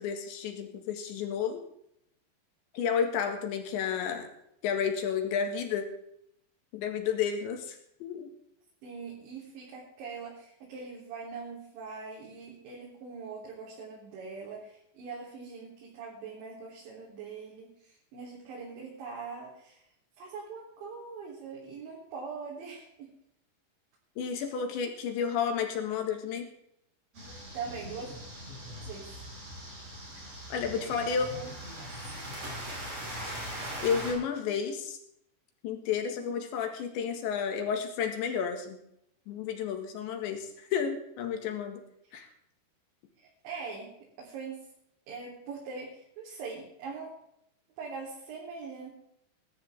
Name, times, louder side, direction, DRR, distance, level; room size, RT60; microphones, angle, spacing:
voice 1, 0.0-1.6 2.7-4.3 4.6-5.9 6.7-8.3 24.2-26.5 30.5-31.3 33.3-35.0 35.6-38.8 39.3-41.8 42.1-42.3, left 7 dB, 85° left, 4 dB, 4.1 m, -31 dB
voice 2, 8.8-19.8 20.2-23.1 27.5-28.1 28.8-29.1 30.8-31.5 31.8-32.1 36.1-36.4 42.1-42.2 43.2-43.9 44.2-44.7 45.1-47.1 47.8-48.9, right 5 dB, 90° right, -5 dB, 5.8 m, -42 dB
sound 1, 27.1-34.1, right 1 dB, 35° right, 7.0 m, -41 dB
20.5 x 13.5 x 3.6 m, 0.75 s
omnidirectional pair, 5.1 m